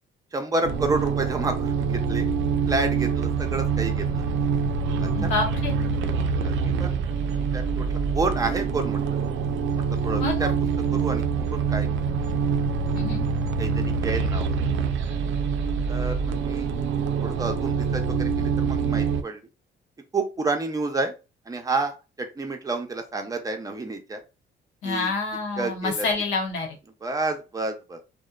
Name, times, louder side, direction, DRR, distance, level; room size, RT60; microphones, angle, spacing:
voice 1, 0.3-2.3 2.7-4.2 5.0-5.3 6.4-7.0 7.3-9.2 10.0-10.5 10.9-11.2 11.5-11.9 13.6-14.5 15.9-16.7 17.2-19.4 20.1-21.1 21.5-24.2 24.8-25.1 25.6-26.1 27.0-28.0, right 3 dB, 15° right, 5 dB, 0.6 m, -29 dB
sound 1, 0.6-19.2, right 5 dB, 75° right, 0.4 m, -25 dB
voice 2, 5.1-5.7 10.2-10.5 12.9-13.2 24.8-26.8, left 3 dB, 90° left, 2 dB, 0.9 m, -27 dB
2.7 x 2.1 x 2.3 m, 0.29 s
cardioid pair, 90°, 20 cm